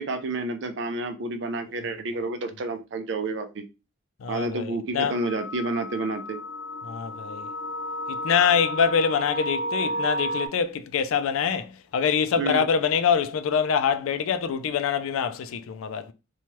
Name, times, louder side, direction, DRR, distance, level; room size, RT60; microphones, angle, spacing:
voice 1, 0.0-3.7 4.3-6.4 12.4-12.6, right 2 dB, 60° right, 0.4 m, -30 dB
voice 2, 4.2-5.2 6.8-7.5 8.1-16.1, left 7 dB, 85° left, 0.4 m, -25 dB
sound 1, 5.0-10.5, equal, 70° left, 0.8 m, -32 dB
2.9 x 2.3 x 3.0 m
head